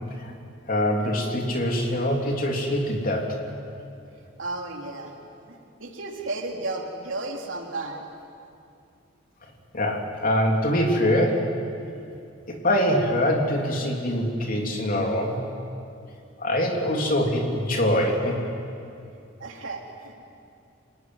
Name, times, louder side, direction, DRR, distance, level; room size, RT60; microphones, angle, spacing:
voice 1, 0.7-3.4 9.7-11.5 12.5-15.4 16.4-18.4, left 1 dB, 45° left, 1 dB, 3.4 m, -24 dB
voice 2, 4.4-5.1 5.5-8.0 19.4-20.1, right 2 dB, 70° right, 1 dB, 3.4 m, -33 dB
27.0 x 18.5 x 9.7 m, 2.6 s
head